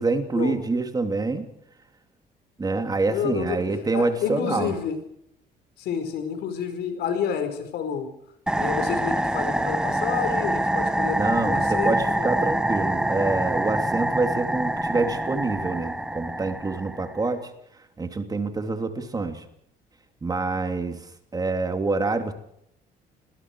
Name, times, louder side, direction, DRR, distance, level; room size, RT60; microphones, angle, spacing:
voice 1, 0.0-1.5 2.6-4.7 11.1-17.5 18.0-19.4 20.2-22.3, right 3 dB, 20° right, 6 dB, 2.9 m, -26 dB
voice 2, 3.1-3.6 3.9-5.0 5.8-8.1 8.5-12.3, left 7 dB, 75° left, 8 dB, 5.1 m, -29 dB
sound 1, 8.5-17.3, right 1 dB, 5° right, 1.2 m, -25 dB
29.5 x 20.5 x 4.8 m, 0.74 s
cardioid pair, 110°, 17 cm